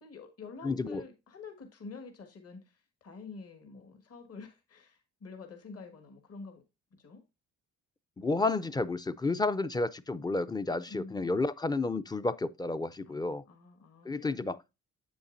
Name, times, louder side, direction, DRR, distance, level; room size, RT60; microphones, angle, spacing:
voice 1, 0.0-6.6 7.0-7.2 10.9-11.3 13.0-14.4, left 4 dB, 50° left, 1.9 m, -48 dB
voice 2, 0.6-1.0 8.2-13.4 14.1-14.6, left 3 dB, 15° left, 0.4 m, -31 dB
8.0 x 7.0 x 2.6 m
cardioid pair, 90°, 30 cm